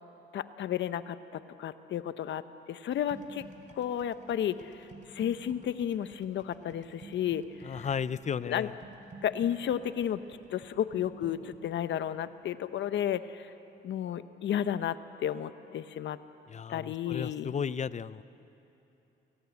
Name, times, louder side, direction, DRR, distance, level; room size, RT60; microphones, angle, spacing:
voice 1, 0.3-2.4 2.7-3.4 3.7-7.9 8.4-8.7 9.2-10.2 10.5-13.5 13.8-16.2 16.7-17.5, left 10 dB, 70° left, 12 dB, 0.9 m, -32 dB
sound 1, 2.9-14.8 15.0-15.4, right 2 dB, 40° right, 2.6 m, -52 dB
voice 2, 7.6-8.7 16.5-18.2, left 7 dB, 35° left, 17 dB, 0.6 m, -34 dB
28.0 x 17.5 x 8.3 m, 3.0 s
cardioid pair, 90°, 20 cm